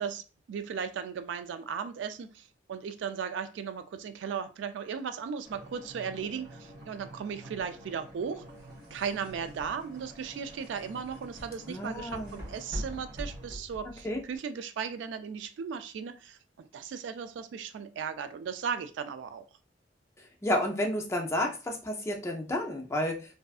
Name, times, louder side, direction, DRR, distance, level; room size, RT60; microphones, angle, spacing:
voice 1, 0.0-8.5 8.9-19.5, right 6 dB, 80° right, 10 dB, 0.3 m, -36 dB
sound 1, 5.4-13.5, right 1 dB, 20° right, 1.1 m, -50 dB
sound 2, 8.5-14.4, equal, 55° right, 1.1 m, -43 dB
voice 2, 11.7-12.4 14.0-14.2 20.2-23.4, left 1 dB, 15° left, 1 dB, 0.4 m, -31 dB
2.6 x 2.3 x 2.3 m, 0.32 s
head